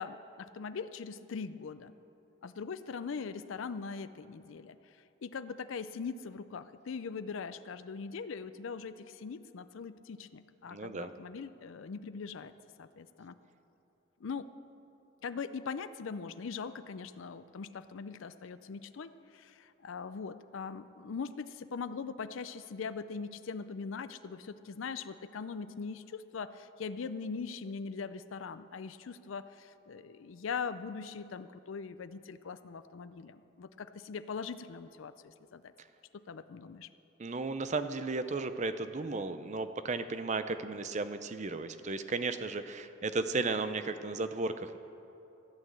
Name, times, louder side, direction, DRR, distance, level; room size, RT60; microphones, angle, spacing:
voice 1, 0.0-2.0 2.4-12.5 12.8-13.3 14.2-14.5 15.2-35.7 36.1-36.9, left 5 dB, 75° left, 12 dB, 0.5 m, -41 dB
voice 2, 10.7-11.1 37.2-44.8, right 3 dB, 35° right, 11 dB, 0.5 m, -34 dB
14.5 x 8.8 x 7.7 m, 2.9 s
head